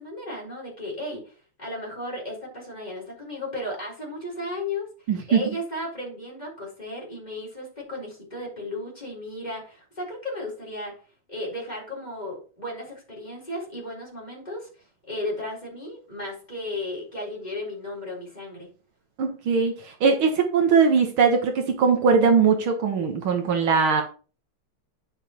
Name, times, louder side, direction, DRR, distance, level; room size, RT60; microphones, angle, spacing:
voice 1, 0.0-4.9 5.3-10.9 11.3-14.7 15.1-18.7, left 1 dB, 20° left, -3 dB, 4.1 m, -34 dB
voice 2, 5.1-5.4 19.2-19.7 20.0-24.0, right 5 dB, 75° right, 4 dB, 2.1 m, -20 dB
9.9 x 7.2 x 3.0 m, 0.37 s
omnidirectional pair, 2.3 m